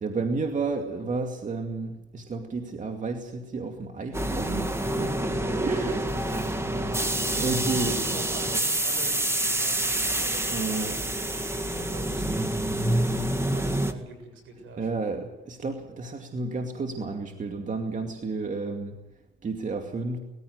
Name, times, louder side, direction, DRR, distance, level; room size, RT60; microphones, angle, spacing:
voice 1, 0.0-5.1 5.7-6.0 7.0-8.2 10.5-10.9 14.8-19.0 19.4-20.2, right 3 dB, 40° right, 4 dB, 2.4 m, -31 dB
sound 1, 4.1-13.9, right 1 dB, 15° right, 1.8 m, -27 dB
voice 2, 5.1-15.1, right 3 dB, 80° right, 5 dB, 7.3 m, -44 dB
20.0 x 15.5 x 9.6 m, 0.99 s
cardioid pair, 90°, 20 cm